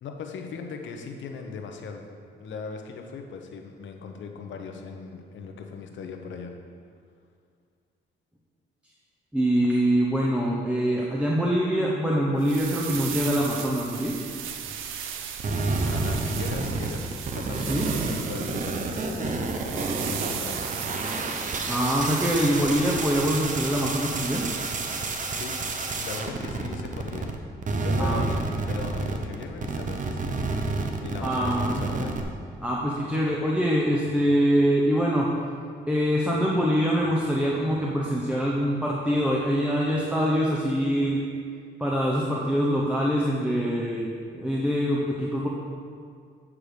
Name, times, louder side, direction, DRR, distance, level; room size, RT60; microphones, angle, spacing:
voice 1, 0.0-2.0 2.4-6.5 15.8-17.1 17.3-20.6 22.6-22.7 25.3-25.7 26.0-27.3 27.7-30.3 31.0-32.2, left 5 dB, 70° left, 4 dB, 0.9 m, -38 dB
voice 2, 9.3-14.2 17.5-17.9 21.6-24.5 28.0-28.2 31.2-31.8 32.6-35.3 35.9-41.2 41.8-45.5, equal, 5° right, -4 dB, 0.9 m, -24 dB
sound 1, 12.4-25.2, right 8 dB, 85° right, 0.6 m, -37 dB
sound 2, 15.4-27.4 27.6-32.2, right 3 dB, 40° right, 0.8 m, -29 dB
8.5 x 4.8 x 5.0 m, 2.1 s
cardioid pair, 90°, 20 cm